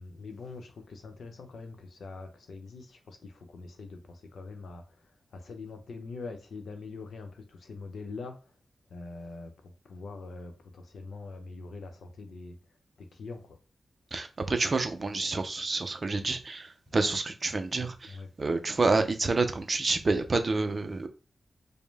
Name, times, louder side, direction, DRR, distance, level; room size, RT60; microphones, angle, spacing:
voice 1, 0.0-4.8 5.3-8.4 8.9-9.5 9.8-12.6 13.0-13.6 16.9-17.0 18.1-18.3, left 3 dB, 80° left, 0.8 m, -43 dB
voice 2, 14.1-21.1, right 3 dB, 35° right, 0.5 m, -28 dB
5.2 x 2.1 x 3.4 m
wide cardioid pair, 160°, 0 cm